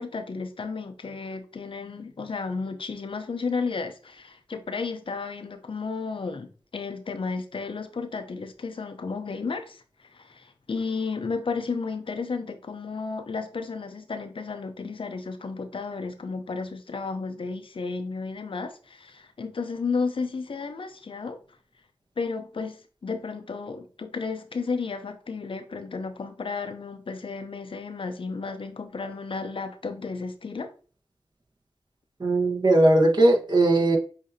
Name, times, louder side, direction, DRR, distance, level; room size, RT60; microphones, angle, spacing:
voice 1, 0.0-21.4 22.2-30.7, left 4 dB, 60° left, 0.6 m, -33 dB
voice 2, 32.2-34.0, right 2 dB, 45° right, 1.2 m, -19 dB
6.6 x 2.7 x 2.7 m
cardioid pair, 45°, 10 cm